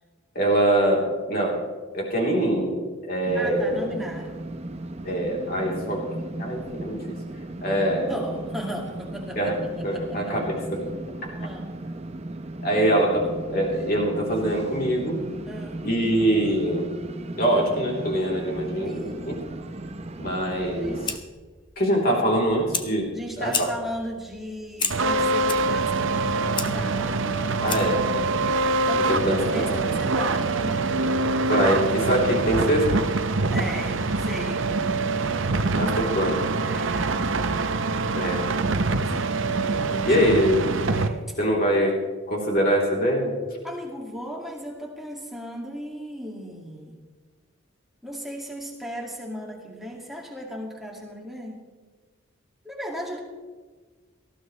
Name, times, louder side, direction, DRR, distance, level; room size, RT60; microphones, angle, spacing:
voice 1, 0.4-1.7 1.9-2.8 3.0-3.9 5.0-6.1 6.4-7.0 7.6-8.1 9.4-10.9 12.6-15.2 15.8-16.8 17.4-19.3 20.2-20.9 21.8-23.1 23.4-23.7 27.6-28.0 28.9-29.9 31.4-33.0 35.7-36.5 38.2-38.5 40.1-40.7 41.4-42.0 42.3-43.3, right 1 dB, 45° left, -2 dB, 3.4 m, -23 dB
voice 2, 3.3-4.3 8.1-10.3 11.4-11.8 15.5-15.9 18.8-19.3 20.8-21.1 23.1-28.1 28.6-30.9 33.5-34.7 36.7-37.3 37.7-40.3 40.9-41.4 43.6-47.0 48.0-51.7 52.6-53.2, equal, ahead, -1 dB, 2.1 m, -37 dB
sound 1, 3.3-21.2, right 1 dB, 30° right, 0.7 m, -36 dB
Fire, 20.6-28.1, left 5 dB, 20° left, 0.8 m, -35 dB
sound 2, 24.9-41.1, right 3 dB, 65° right, 0.7 m, -24 dB
18.5 x 14.5 x 3.2 m, 1.4 s
head